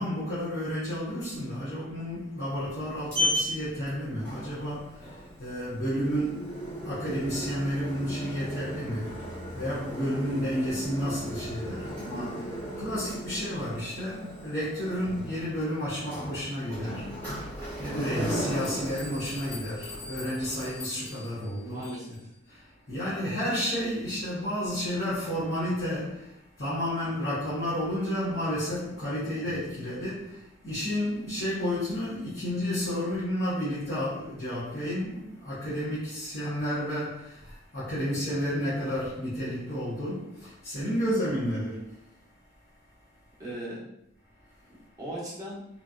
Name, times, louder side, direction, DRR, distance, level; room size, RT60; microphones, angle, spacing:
voice 1, 0.0-22.2 22.5-42.0, equal, 50° left, 0.9 m, -31 dB
Sliding door, 2.5-20.8, equal, 10° left, 1.0 m, -36 dB
sound 1, 18.5-22.2, left 3 dB, 90° left, 1.5 m, -44 dB
voice 2, 21.6-22.3 43.4-43.9 45.0-45.7, right 1 dB, 15° right, 0.9 m, -38 dB
3.0 x 2.6 x 2.4 m
head